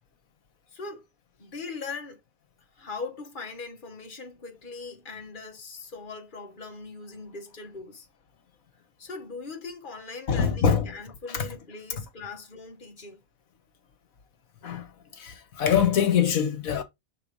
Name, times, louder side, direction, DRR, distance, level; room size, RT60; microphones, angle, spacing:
voice 1, 0.7-1.0 1.4-2.2 2.8-8.1 9.0-13.2, left 4 dB, 35° left, 1.7 m, -40 dB
voice 2, 10.3-10.9 11.3-11.5 14.6-14.9 15.2-16.8, left 7 dB, 80° left, 1.5 m, -23 dB
5.9 x 4.0 x 5.1 m
omnidirectional pair, 1.4 m